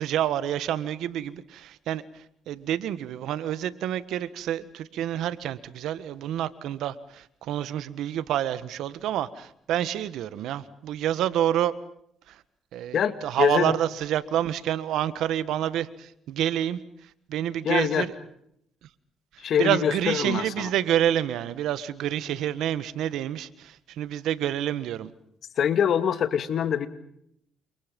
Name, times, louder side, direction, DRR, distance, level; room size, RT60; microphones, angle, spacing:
voice 1, 0.0-2.0 2.5-11.7 12.3-12.4 12.7-16.8 17.3-18.1 19.6-25.1, right 11 dB, 85° right, 1.6 m, -28 dB
voice 2, 12.9-13.7 17.6-18.1 19.4-20.7 25.6-26.9, left 8 dB, 65° left, 2.5 m, -24 dB
30.0 x 27.5 x 5.4 m
cardioid pair, 90°, 0 cm